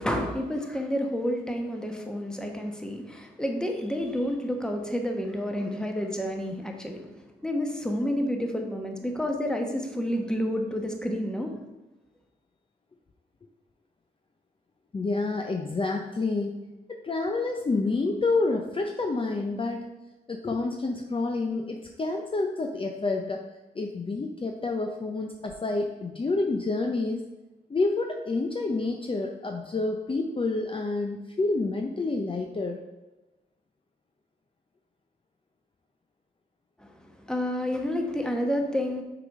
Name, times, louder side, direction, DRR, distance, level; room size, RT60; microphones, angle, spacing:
voice 1, 0.0-7.0 7.4-11.5 36.8-39.0, equal, 5° left, 3 dB, 1.1 m, -29 dB
voice 2, 14.9-16.6 16.9-19.8 20.3-23.4 23.7-27.2 27.7-32.8, left 3 dB, 30° left, 2 dB, 0.6 m, -28 dB
5.8 x 4.0 x 4.8 m, 1.1 s
cardioid pair, 65°, 17 cm